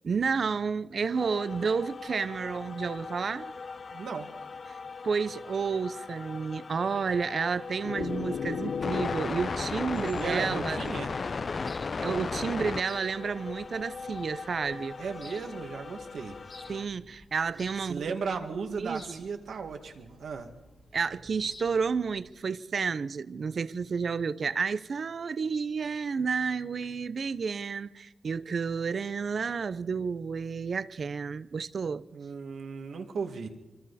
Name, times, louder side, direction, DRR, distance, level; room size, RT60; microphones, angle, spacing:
voice 1, 0.0-3.5 5.0-10.8 12.0-15.0 16.7-18.4 18.7-19.2 20.9-32.0, right 5 dB, 55° right, 0.6 m, -31 dB
sound 1, 1.2-16.9, left 4 dB, 45° left, 0.6 m, -37 dB
voice 2, 3.9-4.3 10.2-11.1 15.0-16.3 17.9-20.5 32.1-33.5, right 5 dB, 80° right, 2.1 m, -35 dB
sound 2, 7.8-13.6, left 6 dB, 80° left, 0.8 m, -39 dB
sound 3, 10.1-22.3, left 2 dB, 30° left, 2.1 m, -54 dB
25.5 x 25.0 x 4.2 m
wide cardioid pair, 130°, 0 cm